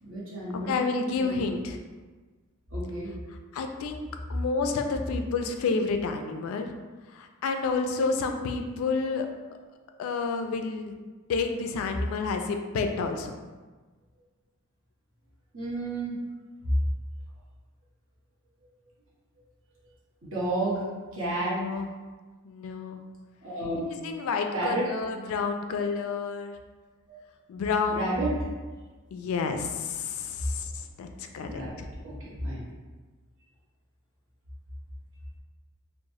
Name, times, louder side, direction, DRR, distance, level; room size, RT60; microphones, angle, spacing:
voice 1, 0.0-0.9 1.2-1.6 2.7-3.1 15.5-16.2 20.2-20.8 21.1-21.6 23.4-23.9 24.5-24.9 27.1-27.2 27.9-28.3 31.4-32.6, right 2 dB, 65° right, -6 dB, 0.9 m, -31 dB
voice 2, 0.7-1.8 3.5-4.0 4.3-6.7 7.1-9.3 10.0-10.9 11.3-13.4 21.4-21.9 22.4-23.0 23.9-26.5 27.5-28.3 29.1-31.6, left 4 dB, 80° left, 6 dB, 0.3 m, -30 dB
3.0 x 2.1 x 2.7 m, 1.3 s
head